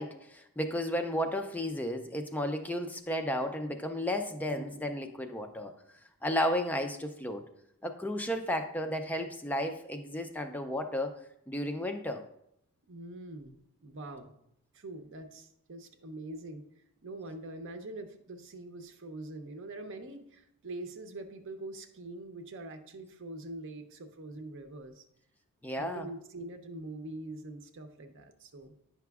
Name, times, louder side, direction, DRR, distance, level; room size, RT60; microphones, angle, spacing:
voice 1, 0.0-5.7 6.2-7.5 7.8-11.2 11.5-12.2 25.6-26.1, left 1 dB, 5° left, 6 dB, 0.3 m, -33 dB
voice 2, 4.5-4.8 12.9-14.3 14.7-16.6 17.0-25.0 25.7-28.7, right 2 dB, 60° right, 7 dB, 0.7 m, -44 dB
9.2 x 5.8 x 2.3 m, 0.76 s
head